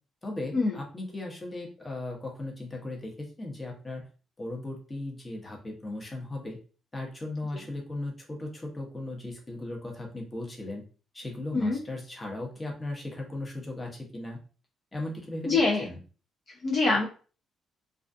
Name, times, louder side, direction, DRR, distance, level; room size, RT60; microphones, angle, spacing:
voice 1, 0.2-4.1 4.4-6.6 6.9-10.8 11.1-14.4 14.9-16.0, left 2 dB, 20° left, 0 dB, 0.8 m, -37 dB
voice 2, 15.4-15.9 16.6-17.1, left 3 dB, 50° left, -2 dB, 0.5 m, -24 dB
2.4 x 2.3 x 2.4 m, 0.37 s
cardioid pair, 90°, 0 cm